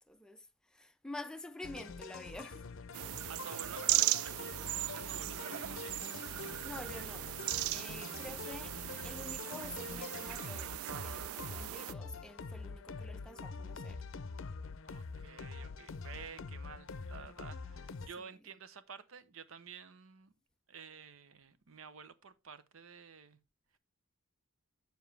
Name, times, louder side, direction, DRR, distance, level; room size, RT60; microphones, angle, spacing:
voice 1, 0.1-2.7 6.4-7.4 7.7-8.8 9.0-14.1 18.2-18.3, left 1 dB, 5° left, 0.4 m, -48 dB
sound 1, 1.6-18.1, left 4 dB, 60° left, 0.6 m, -45 dB
sound 2, 2.9-11.9, right 15 dB, 85° right, 0.3 m, -37 dB
voice 2, 3.3-6.2 14.8-20.3 20.7-23.4, right 6 dB, 70° right, 0.7 m, -51 dB
7.8 x 7.0 x 3.2 m
head